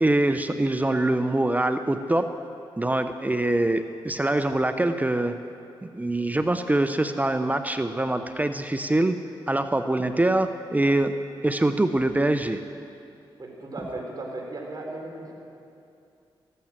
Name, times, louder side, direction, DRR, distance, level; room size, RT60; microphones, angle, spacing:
voice 1, 0.0-2.3 2.8-5.3 5.8-9.2 9.5-11.1 11.4-12.6, right 1 dB, 15° right, 8 dB, 0.7 m, -24 dB
voice 2, 13.4-15.3, right 2 dB, 40° right, -1 dB, 4.1 m, -36 dB
14.5 x 12.5 x 7.5 m, 2.6 s
cardioid pair, 65°, 10 cm